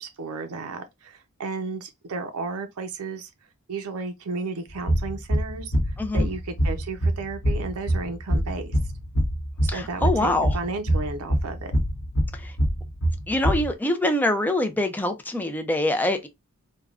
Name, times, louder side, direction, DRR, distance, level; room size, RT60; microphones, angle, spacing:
voice 1, 0.0-3.3 3.7-8.8 9.6-11.7, right 3 dB, 75° right, 0.5 m, -33 dB
sound 1, 4.8-13.7, equal, 55° left, 0.8 m, -25 dB
voice 2, 9.7-10.5 12.3-12.5 13.3-16.3, left 1 dB, 10° left, 0.4 m, -24 dB
3.4 x 2.1 x 2.3 m
head